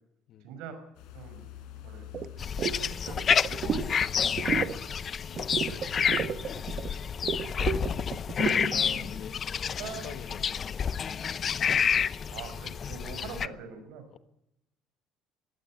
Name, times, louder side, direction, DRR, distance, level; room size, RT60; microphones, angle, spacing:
voice 1, 0.4-0.8 1.1-1.4 1.8-2.0 2.7-3.9 4.2-4.8 5.6-5.8 8.7-9.2 9.8-10.4 12.3-14.1, right 6 dB, 75° right, 5.8 m, -44 dB
sound 1, 0.9-6.7, left 10 dB, 80° left, 5.2 m, -49 dB
sound 2, 2.1-2.3 2.6-2.8 3.1-3.9 4.2-4.8 5.4-6.9 7.2-8.8, right 7 dB, 40° right, 1.3 m, -32 dB
sound 3, 2.4-13.5, left 7 dB, 30° left, 0.7 m, -29 dB
voice 2, 8.9-10.8 13.2-13.3 14.1-14.2, left 9 dB, 50° left, 1.4 m, -48 dB
21.5 x 16.5 x 8.7 m
cardioid pair, 150°, 0 cm